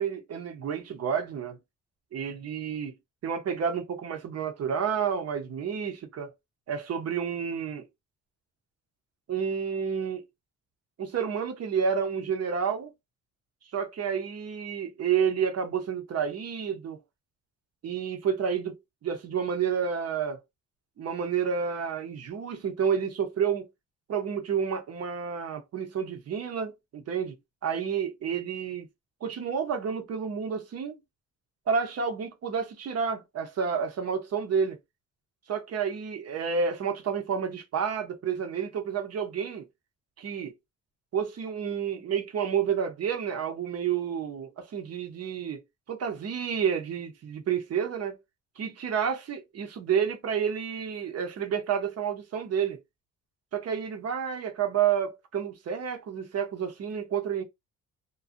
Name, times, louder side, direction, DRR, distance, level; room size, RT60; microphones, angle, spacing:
voice 1, 0.0-1.6 2.1-2.9 3.2-6.3 6.7-7.8 9.3-10.2 11.0-12.9 13.7-17.0 17.8-20.4 21.0-23.7 24.1-27.4 27.6-28.9 29.2-31.0 31.7-34.8 35.5-39.7 40.2-40.5 41.1-45.6 45.9-48.2 48.6-52.8 53.5-57.4, right 7 dB, 55° right, 0.8 m, -30 dB
2.5 x 2.3 x 2.5 m
cardioid pair, 90°, 30 cm